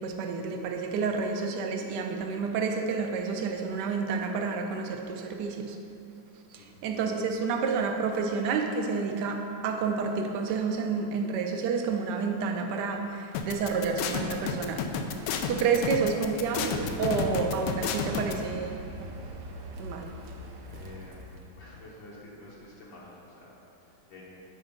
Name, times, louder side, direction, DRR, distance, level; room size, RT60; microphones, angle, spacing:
voice 1, 0.0-5.8 6.5-14.9 15.5-18.8 19.8-20.1, right 5 dB, 70° right, 4 dB, 1.1 m, -29 dB
sound 1, 13.3-18.3, left 7 dB, 85° left, 1.5 m, -30 dB
Car, 16.4-21.6, equal, 85° right, 0.7 m, -42 dB
voice 2, 20.7-24.3, left 1 dB, 70° left, -6 dB, 1.7 m, -49 dB
8.4 x 4.4 x 5.1 m, 2.7 s
omnidirectional pair, 2.4 m